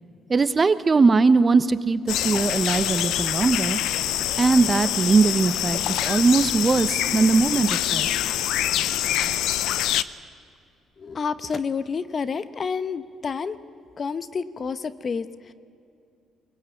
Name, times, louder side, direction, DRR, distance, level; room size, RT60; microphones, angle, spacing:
voice 1, 0.3-3.8 4.4-8.1, right 4 dB, 30° right, 14 dB, 1.0 m, -20 dB
sound 1, 2.1-10.0, left 12 dB, 80° left, 0.7 m, -25 dB
voice 2, 11.0-13.6 14.0-15.5, left 5 dB, 45° left, 13 dB, 1.0 m, -29 dB
23.0 x 20.5 x 8.4 m, 2.5 s
supercardioid pair, 75°, 0 cm